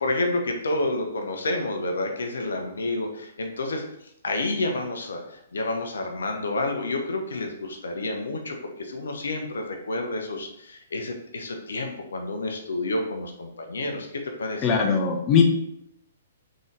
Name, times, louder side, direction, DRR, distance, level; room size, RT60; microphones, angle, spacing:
voice 1, 0.0-3.8 4.2-14.7, left 2 dB, 70° left, 3 dB, 0.7 m, -29 dB
voice 2, 14.6-15.4, left 6 dB, 30° left, 2 dB, 0.7 m, -20 dB
3.9 x 3.7 x 3.3 m, 0.76 s
figure-of-eight pair, 120°, 0 cm